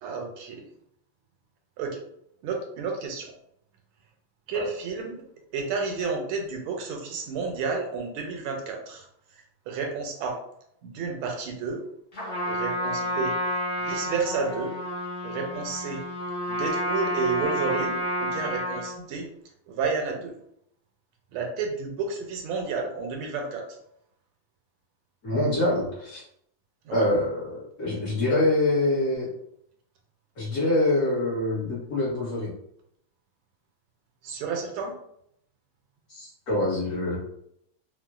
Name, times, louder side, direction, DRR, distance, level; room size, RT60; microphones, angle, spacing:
voice 1, 0.0-0.6 1.8-2.0 2.4-3.3 4.5-5.2 5.5-9.0 9.7-10.4 10.8-11.8 12.4-13.3 13.8-14.7 15.2-16.0 16.5-19.3 19.7-20.3 21.3-23.7 26.8-27.1 34.2-34.9, right 4 dB, 80° right, 1 dB, 1.4 m, -31 dB
Trumpet, 12.1-19.0, left 1 dB, 35° left, 0.9 m, -30 dB
voice 2, 25.2-26.2 26.9-29.3 30.4-32.5 36.1-37.2, left 1 dB, 50° left, -8 dB, 1.3 m, -25 dB
4.1 x 2.1 x 2.3 m, 0.72 s
omnidirectional pair, 2.4 m